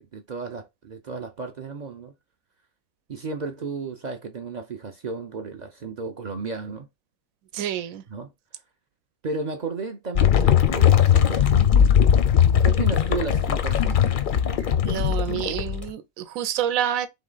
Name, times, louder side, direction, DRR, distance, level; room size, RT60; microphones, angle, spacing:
voice 1, 0.0-2.1 3.1-6.9 8.1-8.3 9.2-11.9 12.6-14.3, right 4 dB, 55° right, 0.5 m, -33 dB
voice 2, 7.5-8.0 14.8-17.1, right 10 dB, 85° right, 1.0 m, -28 dB
sound 1, 10.2-15.9, left 9 dB, 60° left, 0.5 m, -19 dB
3.7 x 3.1 x 3.8 m
omnidirectional pair, 1.4 m